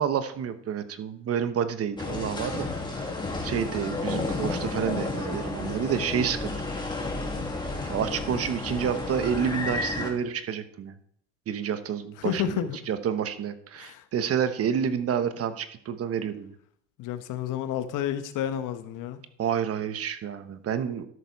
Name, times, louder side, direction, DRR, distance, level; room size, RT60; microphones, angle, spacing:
voice 1, 0.0-3.1 3.4-6.5 7.6-10.9 11.5-16.5 19.4-21.1, right 8 dB, 40° right, 11 dB, 1.1 m, -29 dB
sound 1, 2.0-10.1, left 3 dB, 15° left, 2.4 m, -32 dB
voice 2, 12.2-12.8 13.8-14.0 17.0-19.2, left 10 dB, 60° left, 10 dB, 1.2 m, -30 dB
12.5 x 6.7 x 4.7 m, 0.65 s
supercardioid pair, 100°, 35 cm